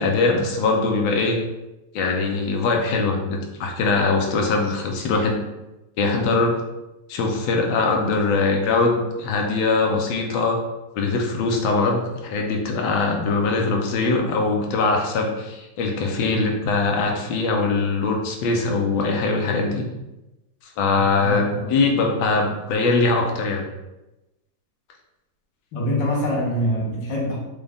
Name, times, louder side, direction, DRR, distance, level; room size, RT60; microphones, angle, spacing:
voice 1, 0.0-1.4 1.9-5.4 6.0-6.5 7.1-10.6 10.9-19.9 20.8-23.6, left 3 dB, 85° left, 2 dB, 1.4 m, -22 dB
voice 2, 21.0-21.6 25.7-27.4, equal, 70° left, -3 dB, 1.7 m, -25 dB
5.1 x 2.3 x 3.4 m, 0.99 s
omnidirectional pair, 2.1 m